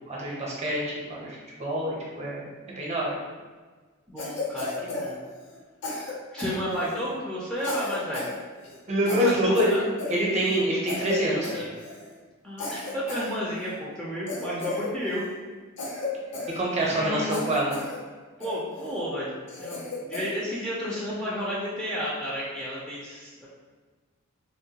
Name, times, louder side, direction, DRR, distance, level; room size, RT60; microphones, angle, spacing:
voice 1, 0.1-2.4 2.8-3.2 8.9-9.8 10.1-11.5 16.5-17.8, equal, 35° right, -4 dB, 0.7 m, -26 dB
voice 2, 4.1-5.2 6.3-8.3 9.2-9.8 11.5-11.7 12.4-15.2 16.9-17.3 18.4-19.3 19.6-23.5, equal, 5° left, -7 dB, 0.4 m, -32 dB
Cough, 4.2-5.6 5.8-7.1 7.6-8.4 8.6-8.8 9.1-10.6 10.9-11.2 11.4-12.1 12.6-13.8 14.3-15.3 15.8-17.0 17.3-18.0 18.4-19.0 19.5-20.4, left 3 dB, 60° left, 0.6 m, -35 dB
3.5 x 2.2 x 2.8 m, 1.4 s
head